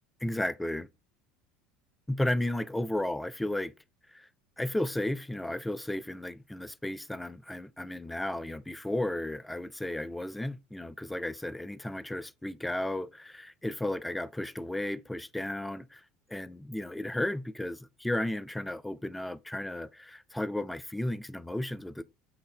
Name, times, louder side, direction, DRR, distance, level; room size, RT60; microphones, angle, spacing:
voice 1, 0.2-0.9 2.1-3.7 4.1-4.3 4.6-16.0 16.3-22.0, left 1 dB, 5° left, 0.3 m, -34 dB
5.6 x 2.6 x 3.3 m
figure-of-eight pair, 70°, 0 cm